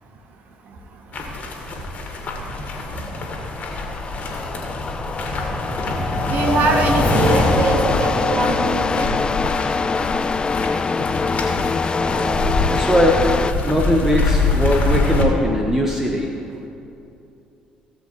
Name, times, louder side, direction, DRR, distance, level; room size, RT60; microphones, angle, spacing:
sound 1, 1.1-15.2, left 2 dB, 45° left, 2.0 m, -24 dB
sound 2, 2.4-13.5, left 4 dB, 25° left, 0.3 m, -24 dB
voice 1, 6.3-9.1, right 3 dB, 50° right, 4 dB, 1.3 m, -22 dB
voice 2, 11.9-13.2 13.6-16.3, equal, 10° right, 0 dB, 1.2 m, -20 dB
17.0 x 7.6 x 3.3 m, 2.7 s
figure-of-eight pair, 50°, 4 cm